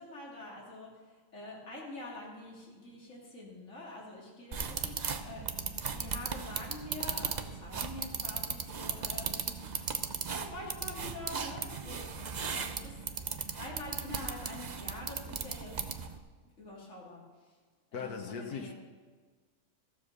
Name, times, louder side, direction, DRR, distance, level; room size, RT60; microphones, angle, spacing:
voice 1, 0.0-10.0 10.3-13.1 13.5-15.8 16.6-17.5 17.9-18.7, left 2 dB, 55° left, -5 dB, 3.3 m, -46 dB
sound 1, 4.5-16.2, right 5 dB, 45° right, 0.6 m, -37 dB
voice 2, 17.9-18.7, left 5 dB, 90° left, 4 dB, 1.6 m, -39 dB
14.5 x 7.5 x 6.7 m, 1.5 s
omnidirectional pair, 1.6 m